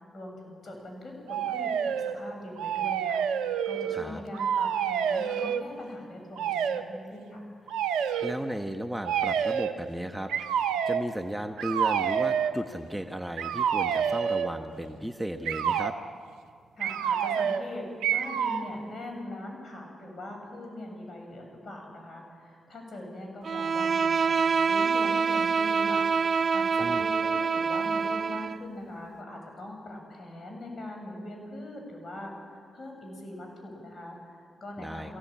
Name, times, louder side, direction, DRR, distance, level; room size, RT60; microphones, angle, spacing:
voice 1, 0.0-7.5 16.8-35.2, left 1 dB, 55° left, 2 dB, 7.3 m, -41 dB
sound 1, 1.3-2.2 2.6-4.1 4.3-5.6 6.4-6.8 7.7-8.3 9.0-9.8 10.3-11.1 11.6-12.5 13.4-14.6 15.4-16.0 16.8-17.7 18.0-18.7, right 8 dB, 85° right, 0.8 m, -28 dB
voice 2, 8.2-10.3 10.9-15.9 26.8-27.0 34.8-35.1, right 1 dB, 5° right, 5 dB, 1.4 m, -35 dB
Bowed string instrument, 23.4-28.6, right 5 dB, 55° right, 0.6 m, -26 dB
23.0 x 17.0 x 8.9 m, 2.2 s
supercardioid pair, 45°, 0 cm